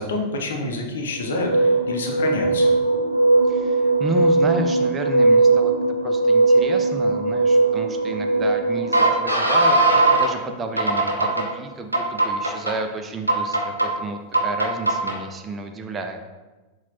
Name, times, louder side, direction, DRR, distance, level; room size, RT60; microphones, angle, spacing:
voice 1, 0.0-2.7, left 2 dB, 65° left, 1 dB, 0.6 m, -27 dB
sound 1, 1.3-10.3 10.8-11.5 11.9-12.7 13.3-13.9 14.3-15.2, right 2 dB, 85° right, 0.5 m, -19 dB
voice 2, 3.5-5.7 6.0-9.8 10.2-16.2, right 3 dB, 20° right, 5 dB, 0.4 m, -31 dB
5.7 x 2.3 x 2.9 m, 1.2 s
figure-of-eight pair, 90°, 0 cm